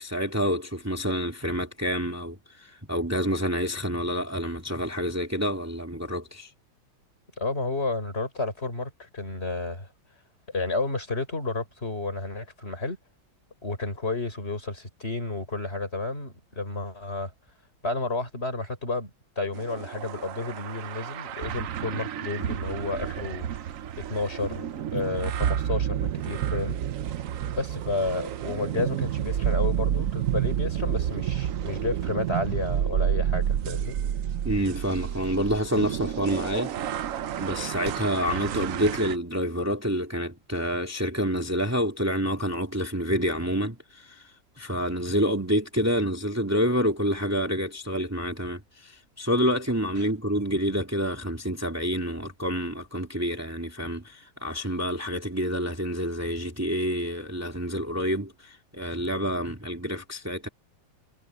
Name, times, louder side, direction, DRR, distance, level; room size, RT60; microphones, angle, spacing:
voice 1, 0.0-6.5 34.4-36.7 37.4-44.2 44.6-60.5, equal, 10° right, 2.4 m, -28 dB
voice 2, 7.4-9.9 10.5-13.0 13.6-17.3 17.8-19.1 19.4-23.7 24.1-24.7 24.9-26.8 27.5-33.9, left 3 dB, 30° left, 6.2 m, -31 dB
sound 1, 19.5-39.2, right 10 dB, 65° right, 0.8 m, -30 dB
omnidirectional pair, 2.1 m